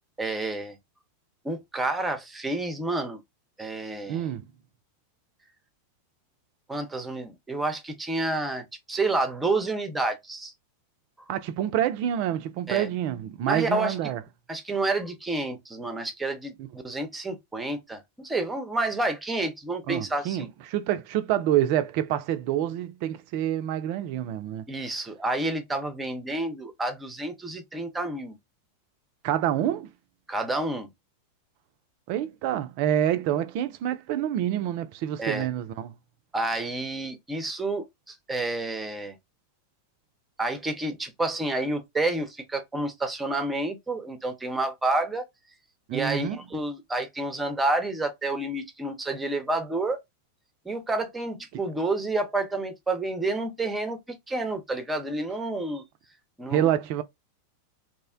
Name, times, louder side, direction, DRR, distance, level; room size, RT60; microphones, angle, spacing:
voice 1, 0.2-0.8 1.4-3.2 3.6-4.3 6.7-10.5 12.7-12.9 13.5-14.0 14.5-20.5 24.7-28.4 30.3-30.9 35.2-35.5 36.3-39.2 40.4-45.2 45.9-50.0 50.6-55.8 56.4-56.7, right 2 dB, 10° right, 0.6 m, -29 dB
voice 2, 4.1-4.4 11.3-14.2 19.9-24.6 29.2-29.9 32.1-35.9 45.9-46.4 56.5-57.0, right 11 dB, 45° right, 0.4 m, -27 dB
2.6 x 2.1 x 2.4 m
figure-of-eight pair, 90°, 0 cm